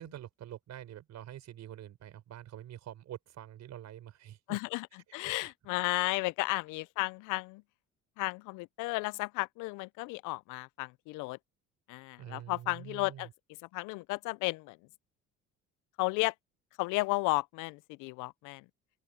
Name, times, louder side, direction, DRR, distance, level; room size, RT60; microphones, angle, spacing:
voice 1, 0.0-4.6 5.2-5.5 6.1-6.2 12.2-13.3, right 12 dB, 60° right, 5.7 m, -46 dB
voice 2, 4.5-4.9 5.1-7.6 8.2-11.4 11.9-13.3 13.7-14.8 16.0-16.3 16.8-18.6, left 24 dB, 85° left, 0.5 m, -33 dB
open air
cardioid pair, 110°, 30 cm